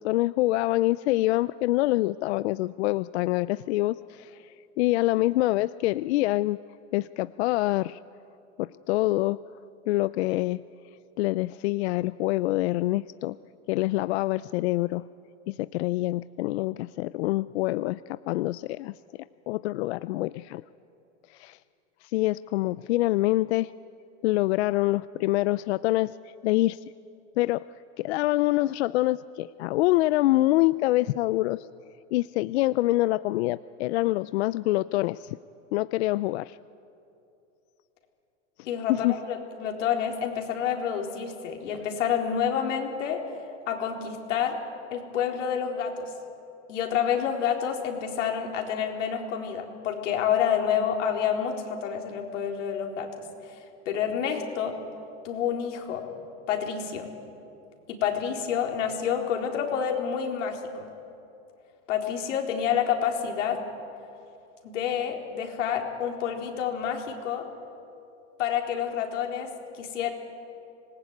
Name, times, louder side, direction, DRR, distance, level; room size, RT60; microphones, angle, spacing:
voice 1, 0.0-6.6 6.9-8.0 8.6-9.4 9.9-10.6 11.2-13.4 13.7-15.1 15.5-18.9 19.5-20.6 21.3-21.6 22.0-23.7 24.2-26.2 26.4-26.8 27.4-27.6 28.0-31.7 32.1-35.4 35.7-36.6 38.9-39.1, left 18 dB, 65° left, 16 dB, 0.5 m, -25 dB
voice 2, 38.7-43.2 43.7-44.6 44.9-46.1 46.7-53.1 53.5-53.6 53.9-54.8 55.2-56.0 56.5-57.1 57.9-60.9 61.9-63.6 64.6-67.5 68.4-69.5 69.8-70.1, left 8 dB, 90° left, 2 dB, 4.1 m, -28 dB
25.5 x 19.5 x 9.3 m, 2.8 s
supercardioid pair, 155°, 36 cm